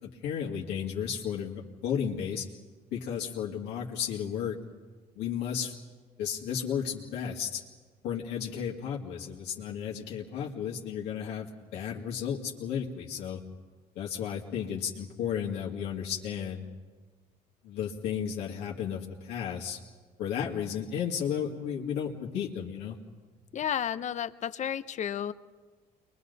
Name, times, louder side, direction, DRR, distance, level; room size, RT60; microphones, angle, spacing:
voice 1, 0.0-2.4 2.9-4.6 5.2-5.7 6.2-7.6 8.0-13.4 14.0-16.6 17.6-19.8 20.2-23.0, left 8 dB, 85° left, -3 dB, 2.3 m, -33 dB
voice 2, 23.5-25.3, left 9 dB, 45° left, 14 dB, 0.7 m, -32 dB
29.5 x 23.0 x 4.1 m, 1.4 s
cardioid pair, 110°, 17 cm